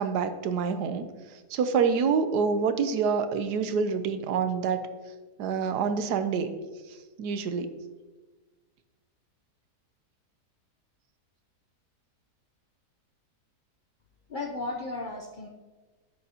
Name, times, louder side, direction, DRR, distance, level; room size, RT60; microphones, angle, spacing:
voice 1, 0.0-4.8 5.4-6.5 6.9-7.7, right 6 dB, 85° right, 9 dB, 1.3 m, -27 dB
voice 2, 14.3-15.5, left 3 dB, 50° left, -1 dB, 0.5 m, -34 dB
10.5 x 7.7 x 2.8 m, 1.3 s
omnidirectional pair, 1.7 m